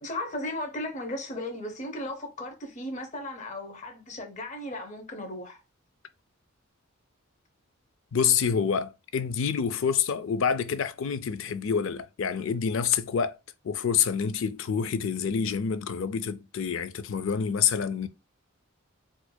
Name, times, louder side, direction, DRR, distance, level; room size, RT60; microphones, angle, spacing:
voice 1, 0.0-5.6, left 1 dB, 35° left, 0.7 m, -36 dB
voice 2, 8.1-13.4 13.6-18.1, left 7 dB, 65° left, 0.4 m, -27 dB
4.4 x 2.5 x 2.2 m
head